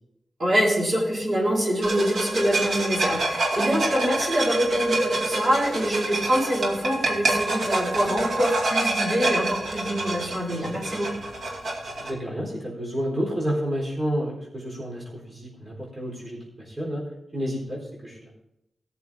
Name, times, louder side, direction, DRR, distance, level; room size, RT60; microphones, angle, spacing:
voice 1, 0.4-11.1, equal, 50° right, -5 dB, 4.6 m, -25 dB
sound 1, 1.8-12.1, right 2 dB, 90° right, 2.2 m, -27 dB
voice 2, 12.0-17.0 17.3-18.3, equal, 25° right, -4 dB, 4.0 m, -30 dB
18.0 x 6.9 x 3.7 m, 0.85 s
wide cardioid pair, 90°, 0 cm